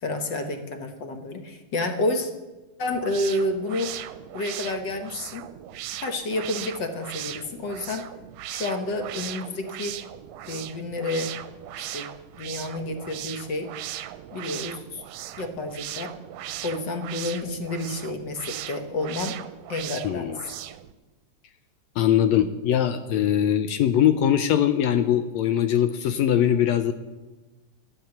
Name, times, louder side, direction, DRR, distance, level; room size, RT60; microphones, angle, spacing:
voice 1, 0.0-2.3 2.8-3.9 4.3-5.5 5.9-8.1 8.5-10.0 10.5-11.3 11.8-12.1 12.4-13.7 14.3-15.0 15.4-16.1 16.6-19.3 19.7-20.3, left 2 dB, 55° left, 6 dB, 1.3 m, -30 dB
sound 1, 2.9-20.9, right 12 dB, 75° right, 1.7 m, -38 dB
voice 2, 20.0-20.4 22.0-26.9, left 10 dB, 75° left, 9 dB, 1.8 m, -21 dB
13.5 x 11.0 x 7.1 m, 1.2 s
omnidirectional pair, 3.3 m